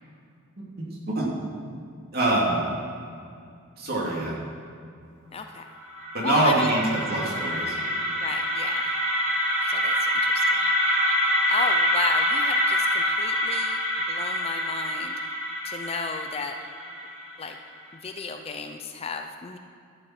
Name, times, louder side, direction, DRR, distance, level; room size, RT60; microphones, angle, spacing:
voice 1, 0.6-1.4 2.1-2.6 3.8-4.4 6.1-7.8, right 2 dB, 45° right, -4 dB, 2.6 m, -25 dB
voice 2, 5.3-5.7 6.2-6.7 7.1-7.3 8.1-8.8 9.6-10.4 11.5-13.8 14.1-15.1 15.6-16.6 17.4-17.6 18.0-19.6, left 4 dB, 30° left, 5 dB, 0.5 m, -33 dB
sound 1, 5.7-17.6, equal, 75° right, 2.5 m, -26 dB
12.5 x 6.9 x 5.8 m, 2.4 s
head